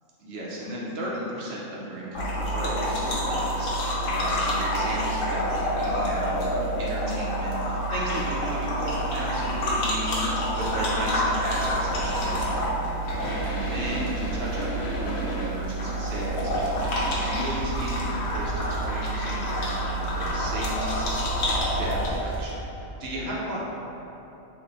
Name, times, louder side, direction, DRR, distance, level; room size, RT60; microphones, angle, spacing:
voice 1, 0.2-6.4 6.8-21.1 21.4-23.6, equal, 60° right, -5 dB, 0.8 m, -35 dB
sound 1, 2.1-22.1, equal, 75° left, 1.0 m, -28 dB
sound 2, 3.5-22.5, equal, 35° right, 0.5 m, -40 dB
3.2 x 2.1 x 3.9 m, 2.9 s
omnidirectional pair, 1.3 m